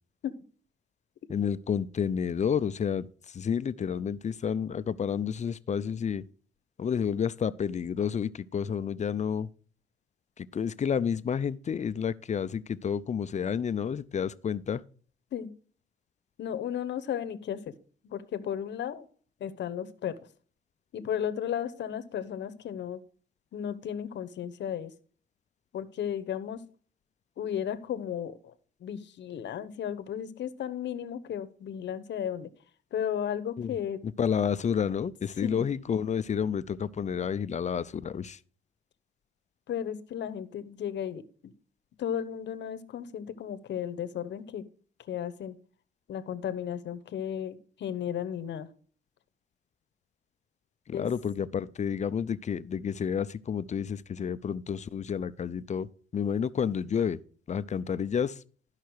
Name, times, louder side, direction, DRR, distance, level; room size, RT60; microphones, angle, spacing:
voice 1, 1.3-6.2 6.8-9.5 10.4-14.8 33.6-33.7 34.2-38.4 50.9-55.9 56.1-57.2 57.5-58.4, left 7 dB, 35° left, 0.5 m, -30 dB
voice 2, 16.4-17.7 18.0-19.1 19.4-20.2 20.9-23.0 23.5-24.9 25.7-26.6 27.4-28.5 28.8-32.5 32.9-34.0 35.4-35.6 39.7-41.2 42.0-44.6 45.0-45.6 46.1-48.7 50.9-51.1, left 9 dB, 65° left, 0.9 m, -34 dB
12.0 x 5.8 x 4.7 m
cardioid pair, 90°, 20 cm